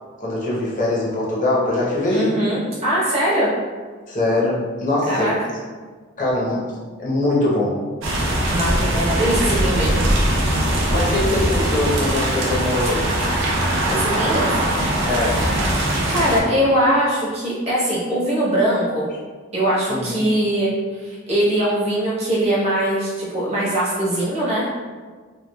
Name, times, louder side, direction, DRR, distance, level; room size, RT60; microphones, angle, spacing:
voice 1, 0.2-2.4 4.1-5.3 6.2-6.7 7.0-7.7 10.9-13.1 15.0-15.4 19.9-20.2, left 1 dB, 40° left, -6 dB, 0.7 m, -22 dB
voice 2, 2.1-3.5 5.1-5.3 8.4-10.0 13.9-14.6 15.7-19.1 19.5-20.7 21.0-24.7, right 1 dB, 30° right, -8 dB, 0.8 m, -21 dB
sound 1, 8.0-16.4, right 1 dB, 70° right, 0.5 m, -21 dB
2.9 x 2.3 x 2.2 m, 1.5 s
head